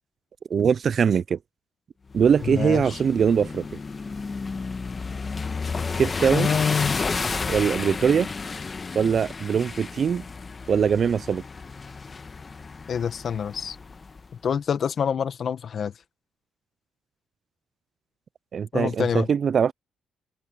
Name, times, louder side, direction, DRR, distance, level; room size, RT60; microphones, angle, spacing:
voice 1, 0.5-1.4 2.1-3.7 6.0-6.5 7.5-8.3 8.9-10.2 10.7-11.4 18.5-19.7, right 7 dB, 50° right, 0.3 m, -22 dB
sound 1, 2.1-14.3, left 4 dB, 30° left, 1.3 m, -32 dB
voice 2, 2.5-3.0 6.3-7.0 12.9-13.8 14.4-15.9 18.7-19.3, left 7 dB, 55° left, 1.3 m, -26 dB
cardioid pair, 90°, 0 cm